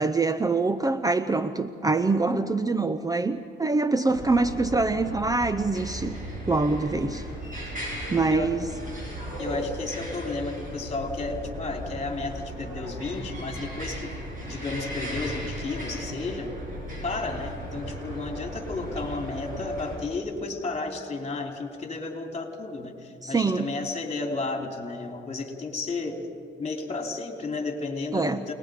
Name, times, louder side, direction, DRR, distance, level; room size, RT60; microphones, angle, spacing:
voice 1, 0.0-6.2 6.5-7.2 7.7-8.7 23.2-23.7 28.1-28.5, right 3 dB, 20° right, 11 dB, 0.6 m, -25 dB
sound 1, 4.1-20.0, equal, 45° right, 7.2 m, -36 dB
voice 2, 9.4-14.1 14.4-16.5 17.0-26.3 26.6-28.5, left 3 dB, 30° left, 3 dB, 3.2 m, -33 dB
29.0 x 20.0 x 5.0 m, 2.4 s
cardioid pair, 90°, 20 cm